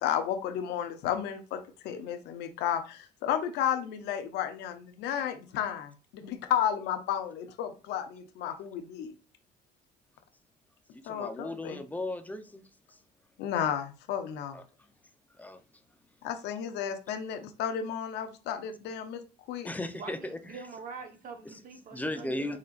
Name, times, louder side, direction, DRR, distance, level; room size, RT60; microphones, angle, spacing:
voice 1, 0.0-5.9 6.2-9.1 11.1-11.8 13.4-14.6 16.2-19.2 19.5-19.7, left 9 dB, 85° left, 0.8 m, -32 dB
voice 2, 10.9-13.0 14.5-14.6 15.4-15.6 19.6-20.6 21.4-21.6 21.9-22.6, left 1 dB, 10° left, 0.7 m, -37 dB
voice 3, 19.9-22.6, right 5 dB, 55° right, 1.2 m, -45 dB
4.9 x 4.3 x 2.5 m
cardioid pair, 110°, 17 cm